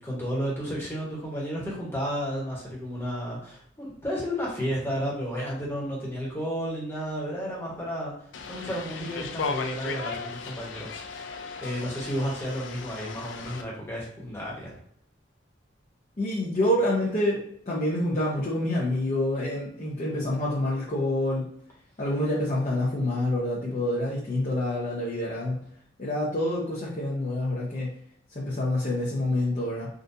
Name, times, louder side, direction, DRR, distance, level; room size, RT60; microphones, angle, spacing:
voice 1, 0.0-14.8, equal, 15° left, -5 dB, 1.2 m, -32 dB
sound 1, 8.3-13.6, left 5 dB, 80° left, 0.4 m, -36 dB
voice 2, 16.2-21.5 22.0-25.6 26.0-27.9 28.3-29.9, left 1 dB, 40° left, -6 dB, 0.7 m, -27 dB
3.7 x 2.5 x 2.7 m, 0.66 s
head